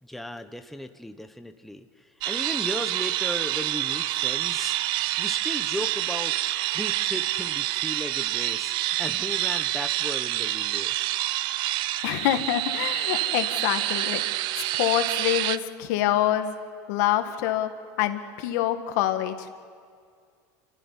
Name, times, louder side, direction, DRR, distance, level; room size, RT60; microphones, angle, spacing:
voice 1, 0.0-4.9 5.2-10.9, left 1 dB, ahead, 8 dB, 0.9 m, -36 dB
sound 1, 2.2-15.6, right 16 dB, 55° right, 0.6 m, -27 dB
voice 2, 12.0-14.2 14.5-16.5 16.9-17.7 18.0-19.5, left 12 dB, 75° left, 8 dB, 1.8 m, -26 dB
26.5 x 14.0 x 9.7 m, 2.1 s
supercardioid pair, 125°, 9 cm